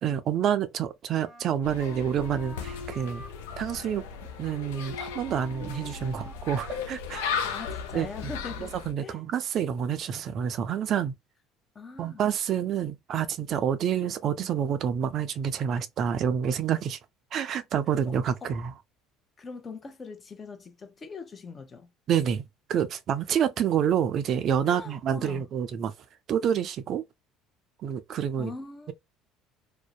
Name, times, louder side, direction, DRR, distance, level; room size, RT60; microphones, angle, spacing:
voice 1, 0.0-3.2 3.6-4.0 4.4-7.4 7.9-8.1 8.6-11.1 12.0-17.0 17.3-18.7 22.1-25.9 26.3-27.0 27.8-28.5, right 8 dB, 55° right, 0.3 m, -28 dB
Wind instrument woodwind instrument, 1.1-7.0, left 1 dB, 10° left, 1.3 m, -46 dB
sound 1, 1.6-8.9, left 6 dB, 85° left, 0.4 m, -36 dB
voice 2, 7.4-8.7 9.0-9.2 11.7-12.2 18.1-18.2 18.4-18.6 19.4-21.9 24.7-25.4 28.4-28.9, left 4 dB, 30° left, 0.7 m, -41 dB
2.5 x 2.1 x 2.3 m
hypercardioid pair, 75°, 0 cm